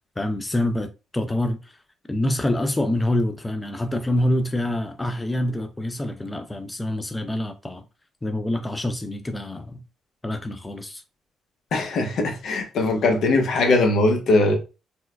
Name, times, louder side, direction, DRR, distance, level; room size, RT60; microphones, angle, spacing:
voice 1, 0.2-1.8 2.1-7.8 8.2-9.8 10.2-11.0, left 1 dB, 15° left, 0.4 m, -26 dB
voice 2, 11.7-14.6, left 2 dB, 70° left, 0.8 m, -20 dB
4.3 x 2.2 x 2.2 m
cardioid pair, 90°, 0 cm